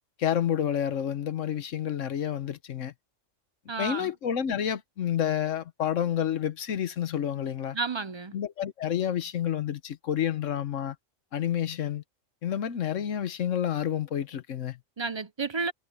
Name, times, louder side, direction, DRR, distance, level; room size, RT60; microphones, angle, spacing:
voice 1, 0.2-2.9 3.8-7.8 8.3-11.0 11.3-12.0 12.4-14.8, left 9 dB, 70° left, 1.2 m, -29 dB
voice 2, 3.7-4.1 7.7-8.4 15.0-15.7, right 4 dB, 45° right, 0.3 m, -31 dB
omnidirectional pair, 1.4 m